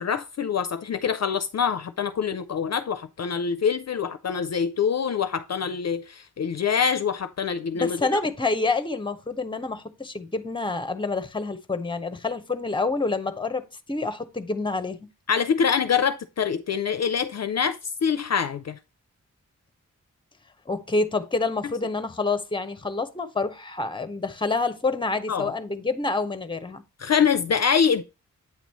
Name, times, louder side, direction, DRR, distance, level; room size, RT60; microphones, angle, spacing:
voice 1, 0.0-8.2 15.3-18.8 25.3-25.5 27.0-28.0, left 7 dB, 55° left, 0.4 m, -25 dB
voice 2, 7.7-13.6 13.9-15.1 20.7-26.8, left 3 dB, 15° left, 0.7 m, -27 dB
8.7 x 3.0 x 5.3 m
wide cardioid pair, 120°, 31 cm